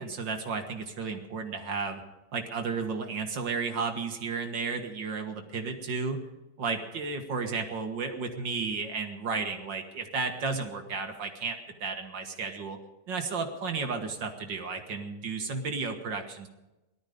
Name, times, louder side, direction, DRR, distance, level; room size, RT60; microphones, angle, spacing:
voice 1, 0.0-2.0 2.3-6.3 6.6-12.8 13.1-16.5, right 4 dB, 60° right, 5 dB, 2.1 m, -33 dB
18.5 x 12.5 x 5.1 m, 1.0 s
omnidirectional pair, 2.4 m